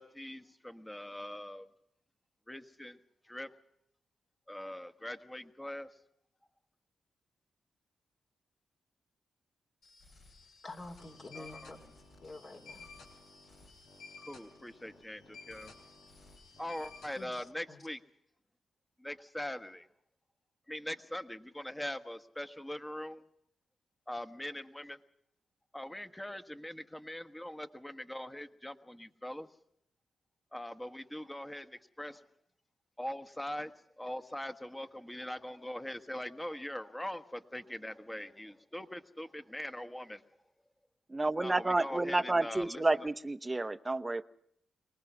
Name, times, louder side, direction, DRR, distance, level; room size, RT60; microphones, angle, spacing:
voice 1, 0.0-1.7 2.5-3.0 3.3-3.5 4.5-5.9 11.4-11.7 14.3-15.7 16.6-18.0 19.0-19.9 20.7-23.2 24.1-25.0 25.7-29.5 30.5-32.2 33.0-40.2 41.4-42.8, left 1 dB, 10° left, 9 dB, 1.4 m, -42 dB
sound 1, 9.8-15.2 15.5-17.2, left 2 dB, 70° left, 7.3 m, -61 dB
voice 2, 10.6-11.9 12.2-12.9 17.1-17.8, left 2 dB, 50° left, 3 dB, 3.1 m, -48 dB
sound 2, 11.0-17.5, left 4 dB, 90° left, 3.4 m, -54 dB
voice 3, 41.1-44.2, right 2 dB, 25° right, 13 dB, 0.8 m, -30 dB
24.0 x 19.0 x 6.2 m, 0.73 s
supercardioid pair, 55°, 0 cm